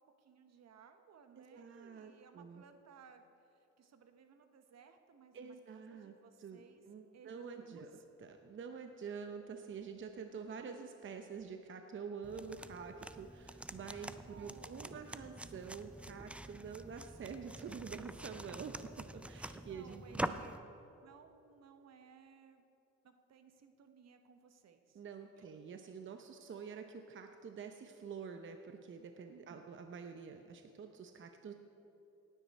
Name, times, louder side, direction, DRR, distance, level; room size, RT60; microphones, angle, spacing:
voice 1, 0.0-6.8 7.1-8.0 14.3-15.0 19.7-20.6 21.0-22.6 23.0-25.0 25.3-25.5 29.3-29.7, right 6 dB, 60° right, 7 dB, 1.0 m, -60 dB
voice 2, 1.4-2.6 5.3-6.1 6.4-7.9 8.2-18.8 19.1-20.4 24.9-31.5, right 6 dB, 40° right, 6 dB, 0.7 m, -47 dB
sound 1, 12.2-20.6, right 1 dB, 5° right, 0.4 m, -46 dB
18.0 x 9.3 x 4.2 m, 2.8 s
cardioid pair, 90°, 30 cm